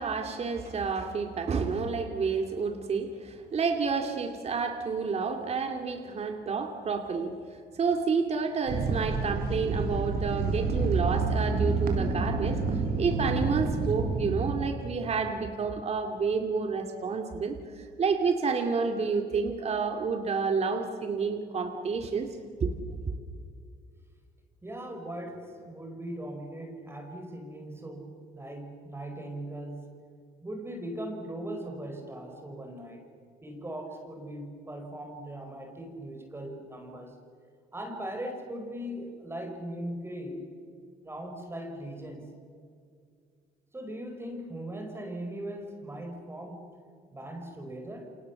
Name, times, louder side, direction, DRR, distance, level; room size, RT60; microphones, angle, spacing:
voice 1, 0.0-22.3 22.6-22.7, right 5 dB, 40° right, 5 dB, 2.4 m, -30 dB
sound 1, 8.7-14.6, right 4 dB, 65° right, 4.5 m, -28 dB
voice 2, 24.6-30.1 30.4-33.1 33.4-37.2 37.7-40.5 41.0-42.3 43.7-46.7 47.1-48.1, right 1 dB, 15° right, 4 dB, 4.8 m, -39 dB
29.5 x 27.0 x 7.1 m, 2.3 s
cardioid pair, 110°, 17 cm